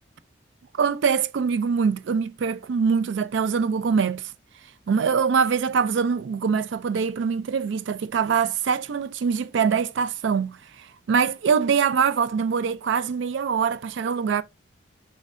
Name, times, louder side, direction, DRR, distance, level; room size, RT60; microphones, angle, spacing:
voice 1, 0.8-4.3 4.9-14.4, right 6 dB, 65° right, 0.3 m, -23 dB
5.3 x 3.1 x 2.4 m
head